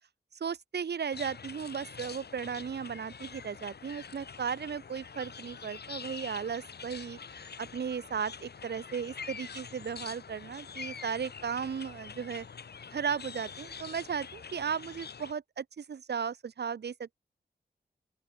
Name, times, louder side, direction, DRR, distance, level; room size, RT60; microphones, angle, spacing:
voice 1, 0.4-7.2 7.6-12.4 12.9-17.2, right 7 dB, 80° right, 1.6 m, -36 dB
sound 1, 1.1-15.3, left 6 dB, 75° left, 5.0 m, -45 dB
open air
wide cardioid pair, 125°, 17 cm